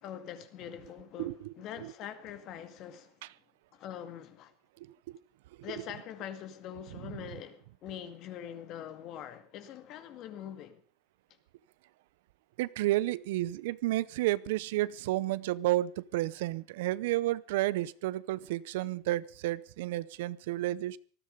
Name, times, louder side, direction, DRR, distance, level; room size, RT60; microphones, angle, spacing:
voice 1, 0.0-3.3 3.7-4.5 5.6-10.8, left 9 dB, 40° left, 2.0 m, -44 dB
voice 2, 1.2-1.5 12.6-21.0, right 16 dB, 80° right, 0.7 m, -31 dB
19.0 x 14.0 x 5.3 m
supercardioid pair, 160°, 0 cm